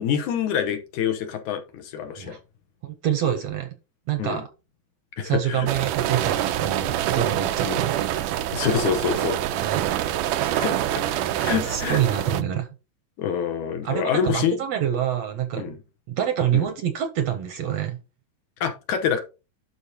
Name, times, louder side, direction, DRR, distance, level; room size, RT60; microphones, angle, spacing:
voice 1, 0.0-2.4 4.2-4.4 5.2-5.7 7.6-7.8 8.5-9.4 10.5-12.0 13.2-14.6 15.6-15.8 16.5-16.7 18.6-19.2, left 8 dB, 70° left, 2.4 m, -26 dB
voice 2, 2.8-3.7 4.1-4.5 5.2-8.2 9.6-9.9 10.4-10.6 11.4-12.7 13.8-15.6 16.1-18.0, right 10 dB, 70° right, 1.7 m, -26 dB
sound 1, 5.7-12.4, right 12 dB, 90° right, 2.2 m, -26 dB
12.0 x 4.6 x 2.8 m
omnidirectional pair, 3.7 m